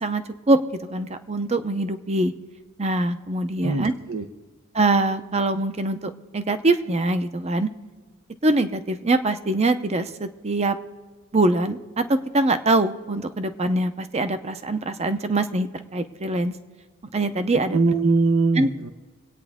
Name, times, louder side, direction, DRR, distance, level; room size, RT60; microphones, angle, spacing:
voice 1, 0.0-0.6 0.9-2.3 2.8-3.9 4.7-7.7 8.4-10.8 11.3-16.5 17.1-17.8 18.6-18.7, right 2 dB, 30° right, 10 dB, 0.7 m, -23 dB
voice 2, 3.6-4.2 17.7-18.9, right 3 dB, 75° right, 7 dB, 0.8 m, -21 dB
25.5 x 9.0 x 3.6 m, 1.4 s
head